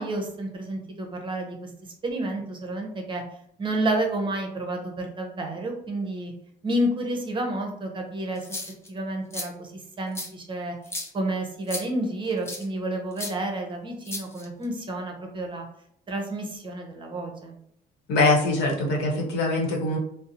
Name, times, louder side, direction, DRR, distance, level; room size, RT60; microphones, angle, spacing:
voice 1, 0.0-1.7 2.0-3.2 3.6-6.3 6.6-8.4 8.9-9.7 10.0-10.7 11.1-15.6 16.1-17.6, right 1 dB, 30° right, 2 dB, 0.6 m, -30 dB
sound 1, 8.4-8.9 9.3-9.5 10.1-10.3 10.8-11.1 11.7-11.8 12.5-12.6 13.2-13.3 14.0-14.6, left 2 dB, 15° left, 0.6 m, -34 dB
voice 2, 18.1-20.0, left 2 dB, 85° left, -1 dB, 0.9 m, -23 dB
2.6 x 2.0 x 2.7 m, 0.71 s
cardioid pair, 110°, 17 cm